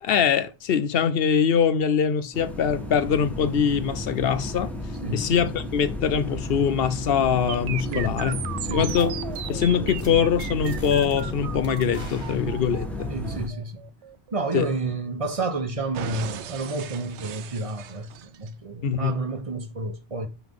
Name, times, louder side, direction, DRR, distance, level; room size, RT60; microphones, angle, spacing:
voice 1, 0.0-4.7 5.1-8.4 8.7-9.1 9.5-13.1 14.5-14.7 18.8-19.2, left 7 dB, 65° left, 0.8 m, -23 dB
sound 1, 2.3-13.5, left 1 dB, ahead, 1.3 m, -33 dB
sound 2, 7.5-15.4 15.9-18.5, right 10 dB, 85° right, 0.9 m, -37 dB
voice 2, 8.6-8.9 13.1-13.9 14.3-20.3, right 2 dB, 35° right, 1.0 m, -30 dB
sound 3, 8.9-9.1 9.3-9.6 9.9-10.1 10.4-11.2 11.6-13.0, left 1 dB, 25° left, 1.8 m, -44 dB
9.4 x 3.5 x 3.7 m
omnidirectional pair, 1.1 m